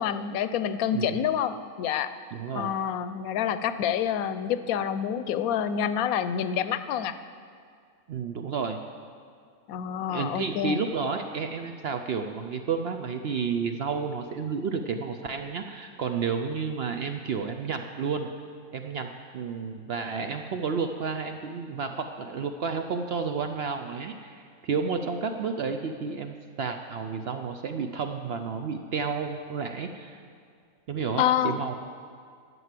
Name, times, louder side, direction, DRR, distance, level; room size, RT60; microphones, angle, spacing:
voice 1, 0.0-2.1 2.5-7.1 9.7-10.9 31.2-31.6, left 9 dB, 75° left, 12 dB, 1.0 m, -27 dB
voice 2, 2.3-2.7 8.1-8.8 10.1-18.3 18.7-19.1 19.3-30.2 30.9-31.7, right 5 dB, 65° right, 6 dB, 0.6 m, -31 dB
11.0 x 7.7 x 7.4 m, 2.1 s
omnidirectional pair, 1.6 m